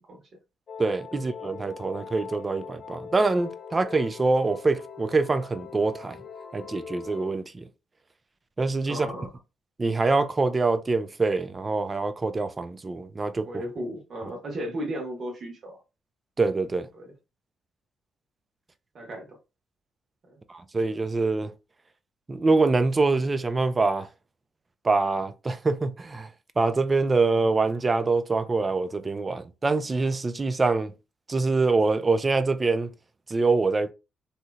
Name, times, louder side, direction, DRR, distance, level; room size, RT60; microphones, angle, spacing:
sound 1, 0.7-7.4, left 6 dB, 55° left, 0.4 m, -42 dB
voice 1, 0.8-6.2 6.5-7.7 8.6-9.1 9.8-13.5 16.4-16.9 20.5-21.5 22.3-24.1 24.8-26.3 26.6-30.9 31.3-32.9 33.3-33.9, right 3 dB, 25° right, 0.4 m, -25 dB
voice 2, 8.8-9.3 13.4-15.8 16.9-17.0 18.9-19.4 20.3-20.4, equal, 50° right, 1.3 m, -35 dB
3.1 x 2.7 x 2.3 m
cardioid pair, 90°, 0 cm